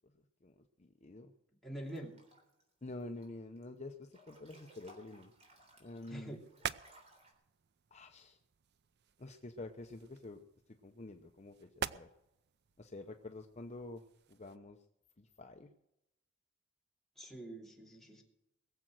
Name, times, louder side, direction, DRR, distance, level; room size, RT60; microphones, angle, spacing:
voice 1, 0.8-1.3 2.8-5.3 5.8-6.4 7.9-8.4 9.2-10.4 10.8-12.1 12.8-14.0 14.3-14.8 15.2-15.7, left 2 dB, 35° left, 4 dB, 0.7 m, -48 dB
voice 2, 1.6-2.1 6.1-6.4 17.2-18.2, right 1 dB, ahead, -2 dB, 2.8 m, -45 dB
Breathing / Bathtub (filling or washing) / Splash splatter, 1.8-2.6 3.0-3.6 4.0-7.3, right 1 dB, 30° right, 3.8 m, -62 dB
sound 1, 5.2-14.6, right 8 dB, 55° right, 0.5 m, -48 dB
21.0 x 7.7 x 6.3 m, 0.87 s
head